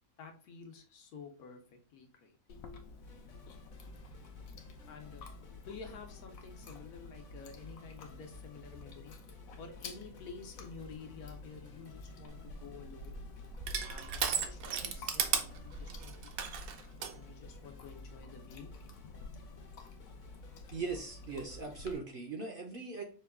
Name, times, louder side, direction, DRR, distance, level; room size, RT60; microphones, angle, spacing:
voice 1, 0.2-2.4 3.2-4.1 4.6-5.3 5.7-9.2 9.6-13.2 13.9-15.2 15.6-16.6 17.1-18.7 19.0-19.4, left 5 dB, 85° left, 5 dB, 1.3 m, -51 dB
Chewing mastication, 2.5-21.9, left 3 dB, 70° left, 1.0 m, -51 dB
sound 1, 3.0-22.0, left 3 dB, 45° left, 0.6 m, -56 dB
Crushing, 12.3-17.2, right 7 dB, 70° right, 1.0 m, -36 dB
voice 2, 20.7-23.0, right 4 dB, 55° right, 3 dB, 0.6 m, -40 dB
5.3 x 2.3 x 3.5 m, 0.39 s
omnidirectional pair, 1.6 m